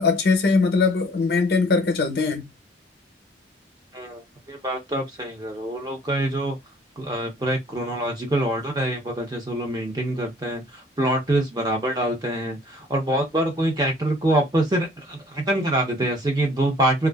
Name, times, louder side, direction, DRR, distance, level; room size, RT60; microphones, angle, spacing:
voice 1, 0.0-2.4, left 4 dB, 60° left, 0.6 m, -21 dB
voice 2, 4.5-6.6 7.0-17.1, right 1 dB, 20° right, 0.8 m, -25 dB
2.4 x 2.3 x 2.3 m
head